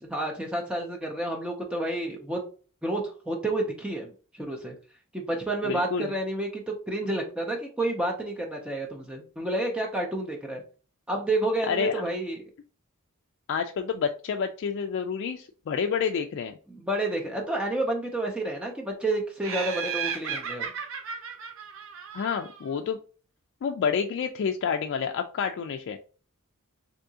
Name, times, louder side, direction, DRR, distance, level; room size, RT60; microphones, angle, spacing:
voice 1, 0.0-2.4 2.8-3.0 3.3-4.1 4.4-4.7 5.1-10.6 11.1-12.4 16.7-20.7, right 1 dB, 5° right, 0 dB, 0.4 m, -30 dB
voice 2, 5.6-6.1 11.7-12.0 13.5-16.5 22.1-23.0 23.6-26.0, left 6 dB, 60° left, 5 dB, 0.3 m, -29 dB
Laughter, 19.4-22.7, right 7 dB, 70° right, 0.6 m, -34 dB
3.5 x 2.8 x 2.7 m, 0.38 s
head